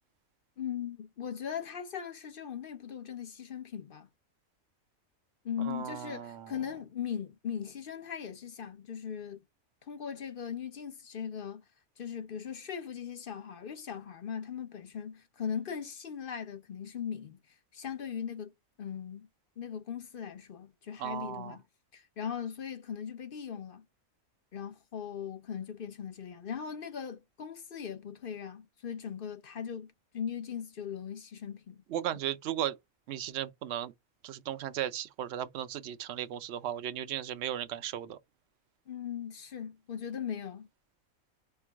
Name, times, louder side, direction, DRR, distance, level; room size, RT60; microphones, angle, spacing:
voice 1, 0.6-4.1 5.4-9.4 9.8-11.6 12.0-17.4 17.7-18.5 18.8-19.3 19.6-21.6 21.9-23.8 24.5-31.8 38.9-40.7, left 8 dB, 45° left, 0.8 m, -39 dB
voice 2, 5.6-6.5 21.0-21.6 31.9-32.8 33.1-33.9 34.2-38.2, right 11 dB, 60° right, 0.8 m, -36 dB
4.5 x 2.1 x 4.5 m
omnidirectional pair, 1.5 m